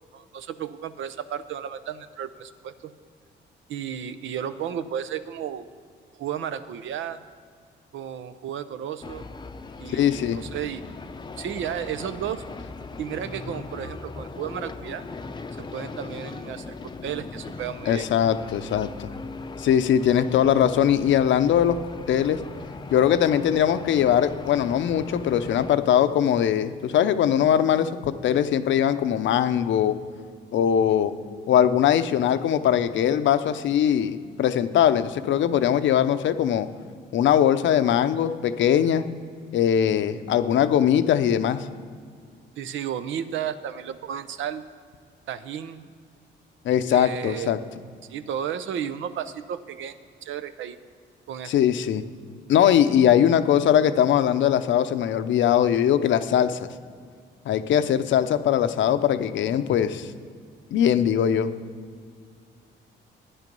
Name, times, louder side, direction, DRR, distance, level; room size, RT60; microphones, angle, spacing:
voice 1, 0.1-2.9 3.7-5.7 6.2-7.2 7.9-9.2 9.8-10.9 11.4-12.4 13.0-15.0 15.6-18.1 42.6-44.6 45.3-45.9 46.9-47.8 48.1-50.0 50.2-50.8 51.3-51.5 53.3-53.4, right 9 dB, 75° right, 12 dB, 0.7 m, -33 dB
sound 1, 9.0-25.8, left 3 dB, 20° left, 0.6 m, -39 dB
voice 2, 9.9-10.4 17.9-19.1 19.6-21.8 22.1-22.4 22.9-30.0 30.5-31.1 31.5-36.7 37.1-39.0 39.5-41.6 46.6-47.6 51.5-52.0 52.5-56.6 57.5-60.1 60.7-61.5, left 9 dB, 70° left, 11 dB, 0.7 m, -21 dB
12.5 x 9.6 x 5.3 m, 2.1 s
cardioid pair, 90°, 20 cm